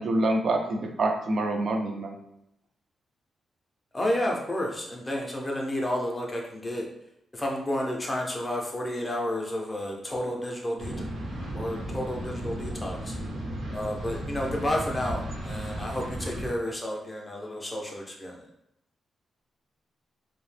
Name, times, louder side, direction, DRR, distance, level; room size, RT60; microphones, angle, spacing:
voice 1, 0.0-2.2, right 2 dB, 50° right, 4 dB, 0.4 m, -26 dB
voice 2, 3.9-6.8 7.3-10.9 11.5-13.1 13.7-18.5, left 1 dB, 15° left, -1 dB, 0.5 m, -31 dB
sound 1, 10.8-16.5, right 1 dB, 70° right, 0.7 m, -35 dB
2.7 x 2.0 x 3.1 m, 0.83 s
wide cardioid pair, 165°, 0 cm